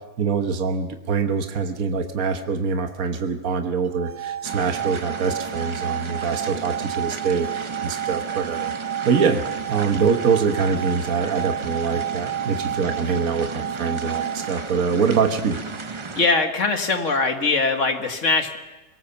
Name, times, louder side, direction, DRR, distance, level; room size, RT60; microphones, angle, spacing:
voice 1, 0.2-8.7 9.0-15.6, right 5 dB, 70° right, 6 dB, 1.6 m, -24 dB
sound 1, 3.9-14.8, right 11 dB, 90° right, 1.6 m, -31 dB
sound 2, 4.4-16.3, right 4 dB, 30° right, 0.6 m, -34 dB
voice 2, 16.2-18.6, left 3 dB, 55° left, 5 dB, 1.9 m, -21 dB
23.0 x 18.0 x 7.0 m, 1.1 s
omnidirectional pair, 1.5 m